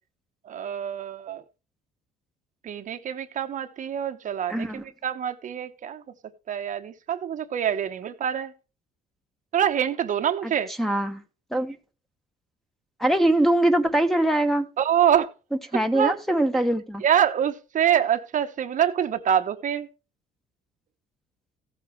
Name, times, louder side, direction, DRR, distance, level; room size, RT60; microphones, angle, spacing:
voice 1, 0.4-1.4 2.6-6.0 6.5-8.5 9.5-10.7 14.8-15.3 15.9-16.2 17.0-19.9, right 9 dB, 50° right, 1.0 m, -25 dB
voice 2, 4.5-4.8 10.4-10.5 10.8-11.2 11.5-11.8 13.0-14.7 15.7-17.0, right 1 dB, ahead, 1.2 m, -22 dB
15.5 x 8.6 x 3.2 m
cardioid pair, 110°, 17 cm